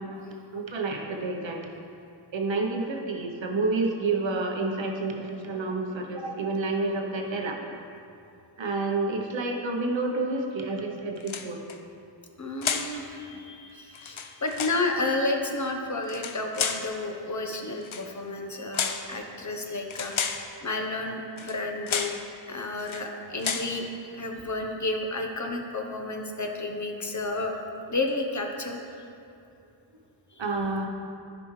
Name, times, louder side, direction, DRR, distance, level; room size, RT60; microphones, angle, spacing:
voice 1, 0.0-1.6 2.3-7.7 8.6-11.6 13.3-13.4 13.7-13.8 30.4-30.9, right 3 dB, 70° right, 1 dB, 0.9 m, -29 dB
sound 1, 11.2-11.8 12.6-13.0 13.9-14.8 16.0-16.9 17.8-18.1 18.7-19.1 19.9-20.5 21.4-21.6 21.9-22.2 22.8-23.1 23.4-23.7, left 7 dB, 85° left, 0.6 m, -31 dB
voice 2, 12.4-22.1 22.5-23.9 24.2-27.5 27.9-28.8, left 2 dB, 40° left, 2 dB, 0.9 m, -31 dB
14.0 x 5.1 x 3.2 m, 2.6 s
wide cardioid pair, 80°, 47 cm